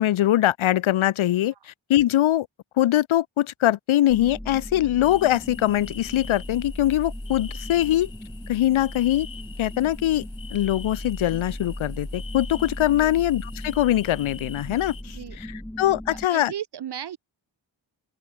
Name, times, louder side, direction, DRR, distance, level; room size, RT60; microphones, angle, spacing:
voice 1, 0.0-1.5 1.9-2.5 2.8-8.1 8.5-9.3 9.6-10.3 10.5-16.5, left 13 dB, 90° left, 0.6 m, -22 dB
sound 1, 4.1-16.3, equal, 5° left, 3.1 m, -37 dB
sound 2, 5.0-15.0, left 6 dB, 70° left, 3.6 m, -46 dB
voice 2, 15.1-15.4 16.1-17.2, right 10 dB, 60° right, 0.6 m, -36 dB
open air
wide cardioid pair, 135°, 47 cm